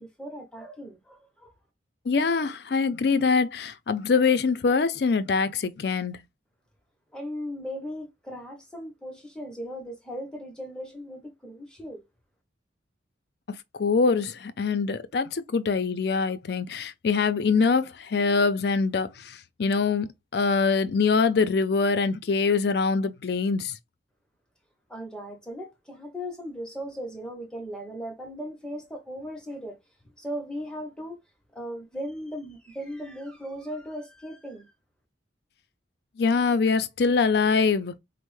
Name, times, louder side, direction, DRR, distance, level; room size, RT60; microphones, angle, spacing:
voice 1, 0.0-1.5 7.1-12.0 24.9-29.8 30.2-31.2 31.5-34.7, equal, 5° left, 0.7 m, -37 dB
voice 2, 2.1-6.2 13.8-23.7 36.2-37.9, left 4 dB, 60° left, 0.4 m, -24 dB
4.3 x 2.0 x 3.1 m
head